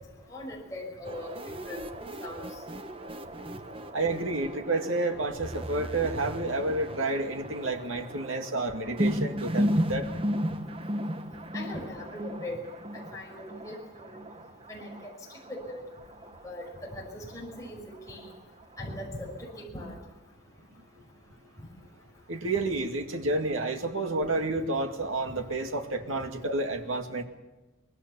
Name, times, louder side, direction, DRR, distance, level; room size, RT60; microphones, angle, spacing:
voice 1, 0.3-1.3 1.7-1.8 2.2-2.4 11.5-12.6 12.9-14.1 14.7-14.9 15.5-15.8 16.4-16.6 16.9-17.8 18.1-18.3 18.8-19.3 19.6-20.0, left 1 dB, 15° left, -2 dB, 5.7 m, -39 dB
sound 1, 1.0-19.6, equal, 25° right, 1.0 m, -35 dB
voice 2, 3.9-10.1 22.3-27.2, right 2 dB, 85° right, 4 dB, 2.2 m, -30 dB
24.5 x 21.0 x 7.0 m, 1.1 s
head